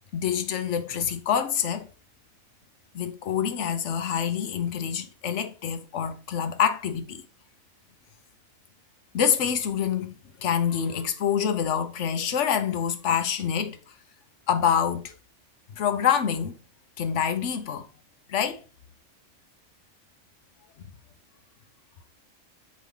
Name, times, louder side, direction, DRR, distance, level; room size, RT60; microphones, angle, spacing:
voice 1, 0.1-1.9 2.9-7.2 9.1-13.8 14.5-15.1 15.7-16.6 17.0-17.9 18.3-18.6, left 8 dB, 60° left, 1.0 m, -26 dB
8.5 x 3.1 x 3.7 m
omnidirectional pair, 1.5 m